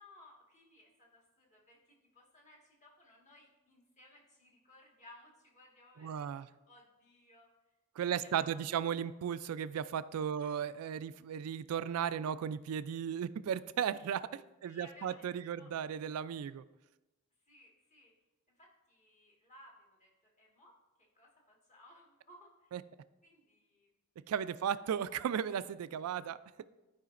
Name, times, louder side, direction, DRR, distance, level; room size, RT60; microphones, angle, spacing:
voice 1, 0.0-6.3 6.7-7.5 8.0-8.6 10.4-10.5 14.6-15.3 15.6-15.7 17.5-18.1 18.5-20.8 21.1-22.7 23.2-23.9 24.6-24.7, left 1 dB, 35° left, -2 dB, 1.6 m, -60 dB
voice 2, 6.0-6.5 8.0-16.6 22.7-22.8 24.3-26.4, right 8 dB, 90° right, 15 dB, 0.3 m, -35 dB
12.5 x 4.9 x 2.5 m, 1.1 s
head